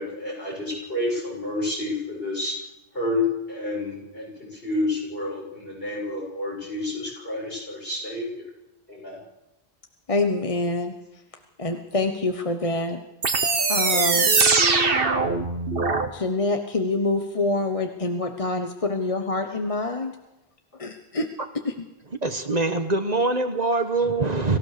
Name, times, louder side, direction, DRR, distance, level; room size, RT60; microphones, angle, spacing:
voice 1, 0.0-2.5 2.9-8.4 8.9-9.2, left 2 dB, 65° left, -3 dB, 7.5 m, -29 dB
voice 2, 10.1-10.9 11.6-13.0 13.4-14.3 16.1-20.1 20.8-21.3 21.6-21.9, left 2 dB, 35° left, 5 dB, 1.2 m, -26 dB
sound 1, 13.2-16.1, right 4 dB, 65° right, 1.7 m, -21 dB
voice 3, 22.2-24.6, right 3 dB, 40° right, 7 dB, 1.4 m, -23 dB
26.0 x 15.5 x 6.8 m, 0.99 s
omnidirectional pair, 1.0 m